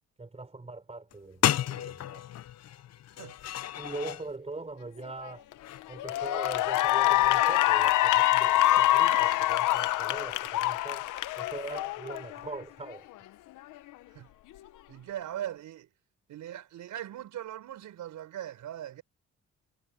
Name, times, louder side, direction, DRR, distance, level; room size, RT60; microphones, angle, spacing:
voice 1, 0.2-2.3 3.8-5.4 5.9-11.1 11.4-13.1, right 3 dB, 20° right, 5.3 m, -42 dB
sound 1, 1.1-1.2 1.4-4.3 5.6-5.9, left 12 dB, 55° left, 0.7 m, -32 dB
Cheering / Applause, 5.3-5.5 6.0-12.5, left 15 dB, 85° left, 0.9 m, -25 dB
voice 2, 14.9-15.9 16.3-19.0, right 11 dB, 80° right, 5.7 m, -40 dB
cardioid pair, 90°, 30 cm